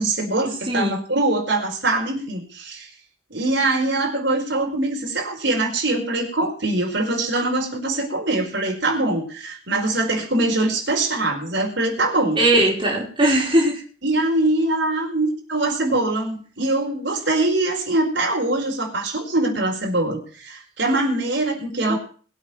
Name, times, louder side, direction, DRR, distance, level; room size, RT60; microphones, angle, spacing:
voice 1, 0.0-2.9 3.3-12.4 14.0-22.0, right 2 dB, 60° right, 0 dB, 4.7 m, -23 dB
voice 2, 12.4-13.8 21.9-22.0, right 1 dB, 25° right, -4 dB, 4.4 m, -19 dB
22.0 x 8.0 x 5.9 m, 0.41 s
head